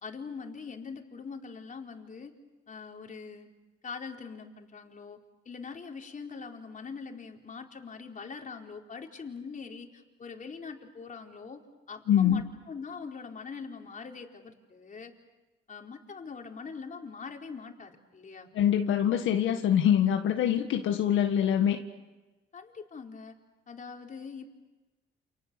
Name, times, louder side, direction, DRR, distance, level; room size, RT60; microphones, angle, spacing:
voice 1, 0.0-2.3 2.7-3.5 3.8-5.2 5.4-15.1 15.7-18.5 22.5-23.3 23.7-24.5, left 5 dB, 40° left, 2 dB, 4.2 m, -43 dB
voice 2, 12.1-12.4 18.5-21.8, left 9 dB, 80° left, 4 dB, 1.8 m, -24 dB
30.0 x 28.5 x 6.9 m, 1.1 s
cardioid pair, 90°, 20 cm